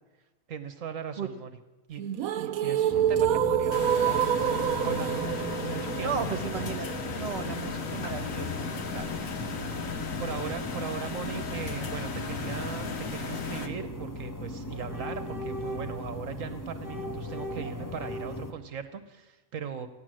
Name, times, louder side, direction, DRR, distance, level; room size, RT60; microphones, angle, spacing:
voice 1, 0.5-1.5 1.9-2.0 2.3-4.3 4.8-6.4 10.2-19.9, right 7 dB, 70° right, 10 dB, 1.2 m, -38 dB
sound 1, 2.0-8.0, right 9 dB, 90° right, 1.1 m, -28 dB
sound 2, 2.9-18.5, left 2 dB, 15° left, 1.0 m, -37 dB
sound 3, 3.7-13.7, left 5 dB, 70° left, 1.6 m, -36 dB
voice 2, 6.0-6.9 7.2-9.1, right 7 dB, 50° right, 8 dB, 1.4 m, -35 dB
16.0 x 10.5 x 7.6 m, 1.1 s
omnidirectional pair, 1.4 m